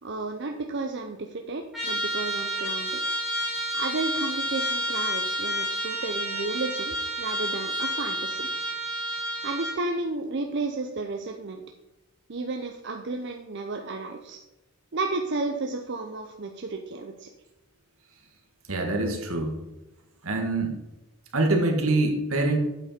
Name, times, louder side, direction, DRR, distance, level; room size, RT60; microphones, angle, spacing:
voice 1, 0.0-3.0 3.7-8.5 9.4-11.6 12.3-14.4 14.9-17.3, right 3 dB, 55° right, 4 dB, 0.6 m, -32 dB
Trumpet, 1.7-9.8, equal, ahead, 3.3 m, -30 dB
voice 2, 18.7-19.6 20.2-20.7 21.3-22.6, right 2 dB, 75° right, 3 dB, 1.7 m, -24 dB
8.8 x 7.4 x 4.4 m, 1.0 s
head